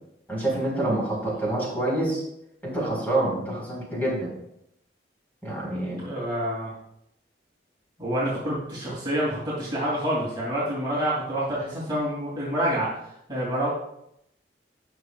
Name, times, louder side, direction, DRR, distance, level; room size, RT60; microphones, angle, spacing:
voice 1, 0.3-2.2 2.6-4.3 5.4-6.0, right 1 dB, 10° left, -4 dB, 4.4 m, -27 dB
voice 2, 6.0-6.7 8.0-13.7, equal, 25° right, -6 dB, 2.9 m, -27 dB
18.5 x 6.4 x 2.4 m, 0.77 s
head